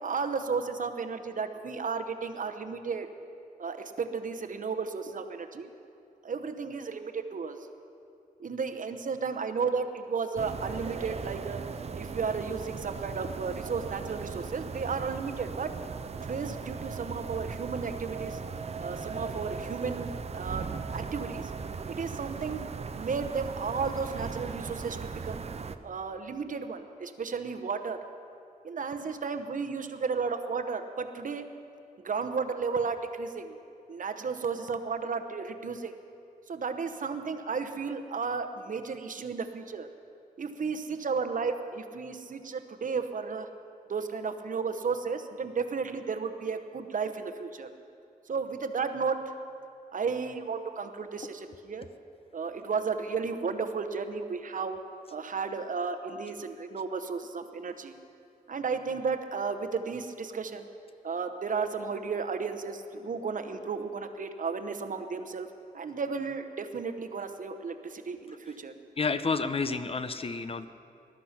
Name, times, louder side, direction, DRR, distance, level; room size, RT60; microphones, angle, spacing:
voice 1, 0.0-3.1 3.6-5.7 6.2-7.7 8.4-11.6 11.9-15.8 16.2-18.4 18.8-21.5 21.9-22.6 22.9-25.4 25.8-28.0 28.6-31.5 32.0-33.6 33.9-35.9 36.5-39.9 40.4-43.5 43.9-47.7 48.3-49.2 49.9-51.9 52.3-54.8 55.1-58.0 58.5-60.7 61.0-65.5 65.7-68.7, right 5 dB, 60° right, 8 dB, 0.9 m, -33 dB
sound 1, 10.4-25.8, right 5 dB, 45° right, 0.5 m, -38 dB
voice 2, 69.0-70.7, left 4 dB, 40° left, 11 dB, 0.5 m, -30 dB
20.0 x 12.0 x 5.9 m, 2.5 s
wide cardioid pair, 180°, 15 cm